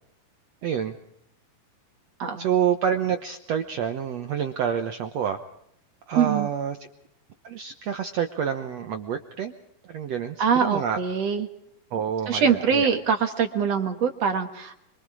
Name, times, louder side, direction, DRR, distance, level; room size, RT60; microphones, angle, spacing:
voice 1, 0.6-0.9 2.4-5.4 6.1-6.8 7.4-9.5 9.8-11.0 11.9-12.9, right 8 dB, 80° right, 7 dB, 1.4 m, -28 dB
voice 2, 6.1-6.5 10.4-11.5 12.3-14.8, right 6 dB, 55° right, 7 dB, 2.1 m, -23 dB
27.0 x 24.5 x 4.9 m, 0.76 s
omnidirectional pair, 4.5 m